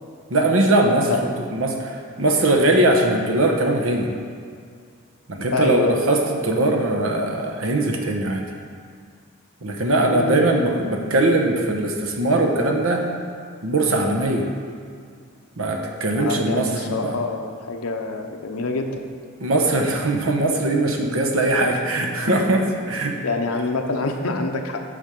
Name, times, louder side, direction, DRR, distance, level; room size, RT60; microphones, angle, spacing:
voice 1, 0.3-4.1 5.3-8.5 9.6-13.1 13.6-14.5 15.6-17.2 19.4-23.2, right 2 dB, 70° right, 2 dB, 1.0 m, -21 dB
voice 2, 1.1-1.4 5.5-6.0 10.1-10.6 16.2-19.0 23.2-24.8, left 3 dB, 85° left, 4 dB, 0.8 m, -26 dB
8.7 x 5.1 x 5.3 m, 2.2 s
head